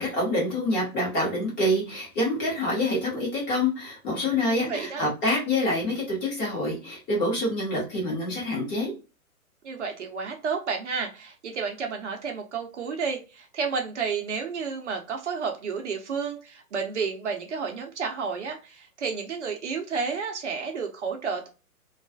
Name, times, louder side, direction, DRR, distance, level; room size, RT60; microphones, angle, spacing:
voice 1, 0.0-8.9, left 1 dB, 20° left, -4 dB, 0.8 m, -26 dB
voice 2, 4.5-5.0 9.6-21.5, right 5 dB, 50° right, 3 dB, 0.6 m, -31 dB
2.3 x 2.2 x 2.4 m, 0.32 s
figure-of-eight pair, 125°, 44 cm